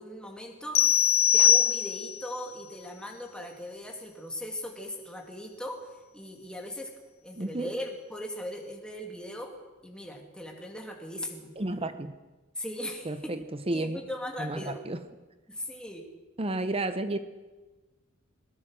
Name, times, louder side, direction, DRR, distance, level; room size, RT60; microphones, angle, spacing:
voice 1, 0.0-6.9 7.2-9.6 9.8-11.5 12.6-13.3 13.7-14.8 15.5-16.0, equal, 5° left, 1 dB, 2.5 m, -39 dB
sound 1, 0.7-2.3, left 10 dB, 75° left, 0.7 m, -22 dB
voice 2, 7.4-7.7 11.6-12.1 13.0-13.4 13.7-14.0 14.4-15.0 16.4-17.2, right 2 dB, 30° right, 10 dB, 0.9 m, -31 dB
21.0 x 19.5 x 6.5 m, 1.2 s
head